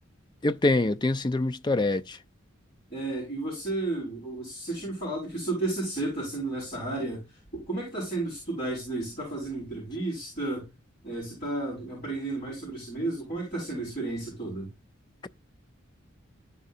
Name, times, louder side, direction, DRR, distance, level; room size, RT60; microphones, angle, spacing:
voice 1, 0.4-2.2, left 2 dB, 20° left, 0.4 m, -25 dB
voice 2, 2.9-10.7 11.0-14.7, right 2 dB, 40° left, 5.7 m, -33 dB
14.0 x 4.9 x 2.7 m
head